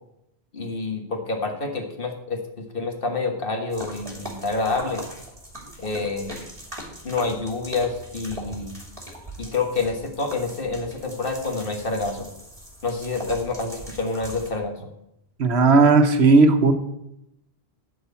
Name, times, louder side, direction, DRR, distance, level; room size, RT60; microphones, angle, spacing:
voice 1, 0.5-5.0 5.8-6.3 7.0-8.7 9.4-12.3 12.8-14.9, left 3 dB, 55° left, 4 dB, 1.8 m, -28 dB
sound 1, 3.7-14.5, equal, 30° right, 2.7 m, -40 dB
voice 2, 15.4-16.7, right 3 dB, 75° right, 7 dB, 1.3 m, -15 dB
12.5 x 4.8 x 8.3 m, 0.84 s
omnidirectional pair, 1.1 m